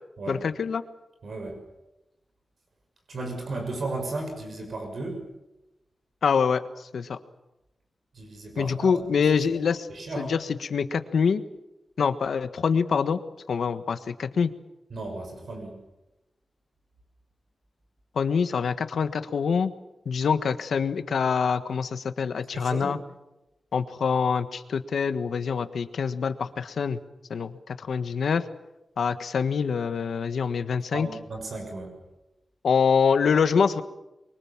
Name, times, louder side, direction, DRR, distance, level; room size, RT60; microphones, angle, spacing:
voice 1, 0.3-0.8 6.2-7.2 8.6-9.9 10.2-11.4 12.0-13.2 13.5-14.5 18.1-19.7 20.0-23.0 23.7-27.0 27.3-28.4 29.0-31.1 32.6-33.8, left 6 dB, 90° left, 10 dB, 1.4 m, -25 dB
voice 2, 1.2-1.6 3.1-5.2 8.1-8.9 9.9-10.4 14.9-15.8 22.5-22.9 30.9-31.9, right 2 dB, 65° right, 3 dB, 6.6 m, -34 dB
26.5 x 23.5 x 7.4 m, 0.95 s
wide cardioid pair, 150°, 0 cm